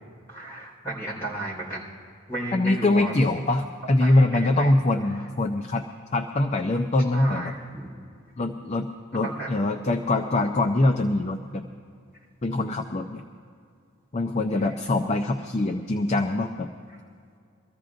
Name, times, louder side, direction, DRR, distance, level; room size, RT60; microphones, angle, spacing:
voice 1, 0.3-1.8 2.3-3.1 4.0-4.7 7.1-7.8 9.1-9.5 14.6-14.7, right 2 dB, 10° left, -5 dB, 4.2 m, -34 dB
voice 2, 2.5-5.9 6.1-7.5 8.4-11.7 12.4-13.2 14.1-16.7, left 2 dB, 30° left, 3 dB, 0.5 m, -23 dB
24.0 x 14.5 x 2.5 m, 2.3 s
head